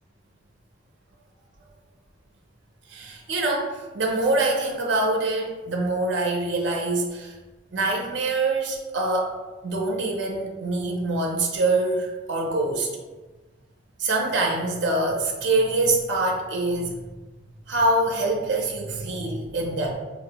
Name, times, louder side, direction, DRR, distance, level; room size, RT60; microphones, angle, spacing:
voice 1, 2.9-3.7 3.9-7.3 7.7-9.3 9.6-12.9 14.0-17.0 17.7-19.9, right 2 dB, 60° right, 0 dB, 0.5 m, -24 dB
3.9 x 2.0 x 2.8 m, 1.2 s
head